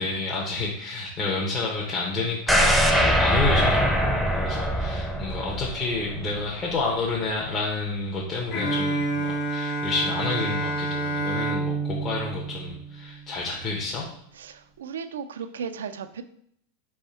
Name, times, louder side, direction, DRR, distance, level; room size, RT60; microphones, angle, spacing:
voice 1, 0.0-14.1, left 3 dB, 35° left, -3 dB, 0.8 m, -29 dB
sound 1, 2.5-6.5 6.8-6.9, equal, ahead, 0.6 m, -22 dB
Bowed string instrument, 8.5-13.4, right 2 dB, 70° left, 1.4 m, -28 dB
voice 2, 14.4-16.2, right 6 dB, 90° right, 10 dB, 0.3 m, -35 dB
3.5 x 3.4 x 4.3 m, 0.70 s
hypercardioid pair, 120°, 0 cm